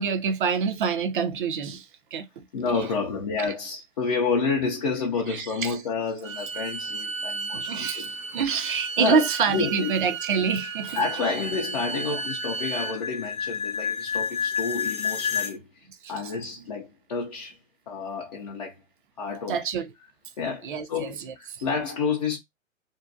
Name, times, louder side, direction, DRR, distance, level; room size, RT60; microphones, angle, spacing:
voice 1, 0.0-2.4 2.7-2.9 3.4-3.5 5.3-5.8 7.5-8.1 8.3-11.0 12.1-12.2 16.0-16.1 19.5-19.9 20.6-21.6, right 6 dB, 40° right, 0.4 m, -27 dB
voice 2, 2.5-8.1 8.4-8.5 9.0-9.9 10.9-17.6 17.9-18.7 19.2-19.6 20.4-22.4, left 4 dB, 35° left, 0.4 m, -29 dB
Bowed string instrument, 6.2-13.0, right 4 dB, 75° right, 0.7 m, -34 dB
sound 1, 8.4-15.6, left 6 dB, 80° left, 0.7 m, -32 dB
2.6 x 2.1 x 2.3 m
figure-of-eight pair, 125°, 40 cm